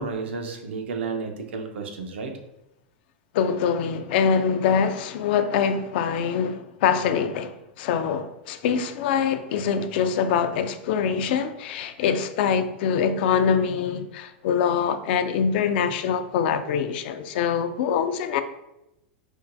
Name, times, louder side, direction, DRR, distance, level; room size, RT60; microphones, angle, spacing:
voice 1, 0.0-2.3, right 4 dB, 85° right, 0.6 m, -32 dB
voice 2, 3.3-18.4, left 7 dB, 65° left, 0.3 m, -24 dB
4.4 x 2.2 x 2.6 m
supercardioid pair, 130°, 6 cm